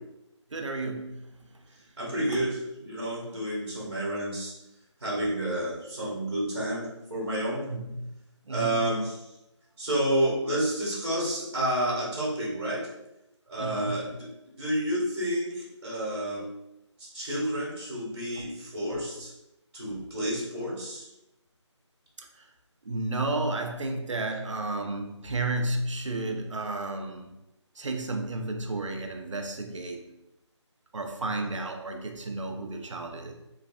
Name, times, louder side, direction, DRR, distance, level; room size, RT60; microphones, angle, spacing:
voice 1, 0.5-1.5 2.3-2.5 7.7-8.0 8.5-8.9 13.6-14.1 18.4-18.5 18.9-19.0 22.2-22.5 22.9-27.3 27.8-30.1 30.9-33.3, right 2 dB, 75° right, 3 dB, 0.6 m, -32 dB
voice 2, 2.0-4.5 5.0-7.7 8.5-9.3 9.8-12.9 13.5-14.3 14.6-16.5 17.0-19.3 19.7-21.1, right 1 dB, 50° right, -6 dB, 1.1 m, -30 dB
3.2 x 2.3 x 2.4 m, 0.90 s
figure-of-eight pair, 175°, 16 cm